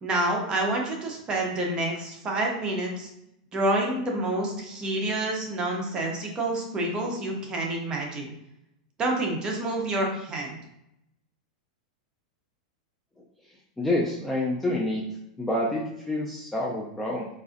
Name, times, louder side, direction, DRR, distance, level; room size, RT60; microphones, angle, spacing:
voice 1, 0.0-3.1 3.5-8.3 9.0-10.6, right 1 dB, 20° right, 0 dB, 0.7 m, -28 dB
voice 2, 13.2-15.0 15.4-17.3, left 1 dB, 5° left, -4 dB, 0.3 m, -28 dB
3.9 x 2.5 x 2.5 m, 0.82 s
supercardioid pair, 155°, 4 cm